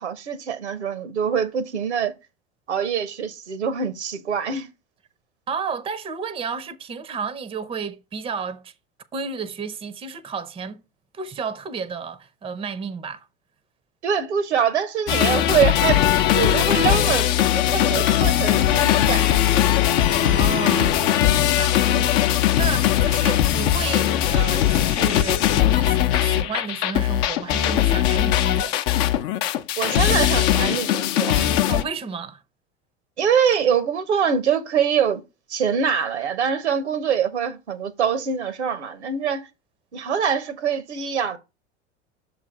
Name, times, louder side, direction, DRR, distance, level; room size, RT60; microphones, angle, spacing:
voice 1, 0.0-2.1 2.7-4.7 14.0-19.6 21.8-22.1 29.8-31.5 33.2-35.2 35.5-39.5 39.9-41.4, right 7 dB, 75° right, 1.0 m, -24 dB
voice 2, 5.5-8.7 9.1-10.8 11.1-13.3 20.2-21.8 22.6-28.8 31.7-32.4, right 5 dB, 15° right, 0.7 m, -32 dB
sound 1, 15.1-31.8, left 12 dB, 45° left, 0.7 m, -20 dB
6.9 x 3.2 x 5.0 m
figure-of-eight pair, 80°, 34 cm